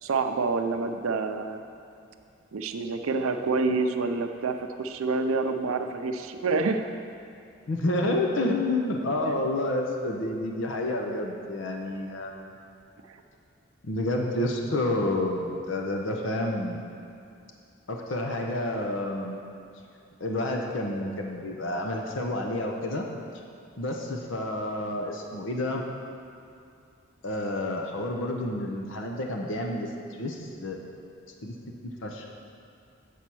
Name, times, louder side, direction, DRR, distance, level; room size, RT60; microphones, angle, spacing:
voice 1, 0.0-1.6 2.5-6.8 9.3-9.4 13.1-13.2, right 3 dB, 90° right, 6 dB, 0.5 m, -27 dB
voice 2, 7.7-12.5 13.8-16.8 17.9-19.4 20.2-23.1 23.8-25.8 27.2-30.8 31.4-31.5 31.8-32.3, left 1 dB, 65° left, 1 dB, 0.7 m, -29 dB
8.3 x 4.3 x 6.1 m, 2.5 s
head